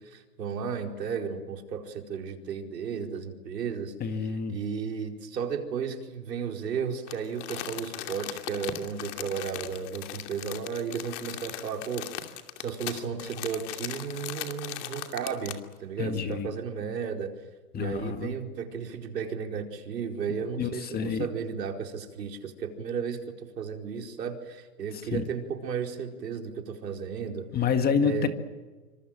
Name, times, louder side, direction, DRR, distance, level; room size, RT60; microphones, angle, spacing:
voice 1, 0.0-3.9 4.5-12.3 12.6-17.3 17.7-27.5 28.0-28.3, right 6 dB, 90° right, 3 dB, 4.8 m, -34 dB
voice 2, 4.0-4.6 16.0-16.5 17.7-18.4 20.6-21.3 25.1-25.2 27.5-28.3, left 6 dB, 20° left, 8 dB, 1.9 m, -28 dB
Crumpling crinkling, 7.1-15.7 16.2-16.3, left 13 dB, 50° left, 2.8 m, -39 dB
27.5 x 25.5 x 7.6 m, 1.3 s
hypercardioid pair, 145°, 47 cm